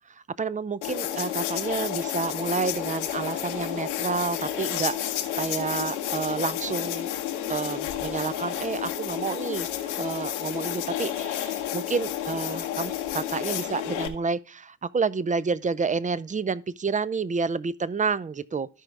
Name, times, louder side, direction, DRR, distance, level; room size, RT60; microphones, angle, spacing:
voice 1, 0.4-7.1 7.5-18.7, right 5 dB, 20° right, 0.6 m, -29 dB
sound 1, 0.8-14.1, left 11 dB, 75° left, 1.1 m, -31 dB
12.5 x 5.8 x 3.4 m
figure-of-eight pair, 45°, 36 cm